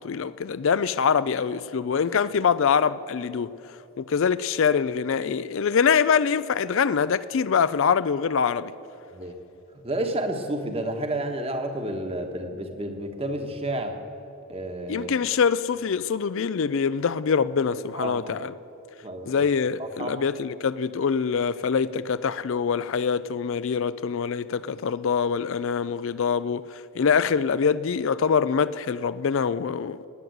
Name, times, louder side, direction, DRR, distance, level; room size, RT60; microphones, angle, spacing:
voice 1, 0.0-3.5 4.0-8.7 14.9-18.5 19.3-30.0, left 6 dB, 60° left, 0.4 m, -24 dB
voice 2, 9.8-14.0 14.5-15.1 17.9-18.4 19.0-19.5 19.8-20.1, right 1 dB, 25° right, 1.3 m, -30 dB
18.5 x 9.3 x 7.9 m
head